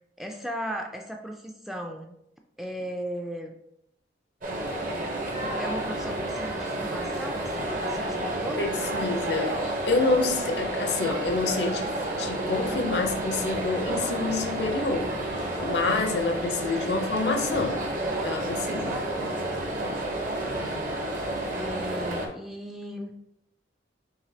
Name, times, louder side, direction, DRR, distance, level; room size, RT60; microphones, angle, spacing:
voice 1, 0.2-2.2 2.6-3.6 5.6-8.6 20.4-21.0 21.5-23.1, equal, ahead, 0.3 m, -37 dB
sound 1, 4.4-22.3, right 1 dB, 50° right, 0.7 m, -30 dB
voice 2, 8.6-17.9 18.2-19.0, left 3 dB, 70° left, 0.6 m, -28 dB
4.8 x 3.2 x 2.7 m
head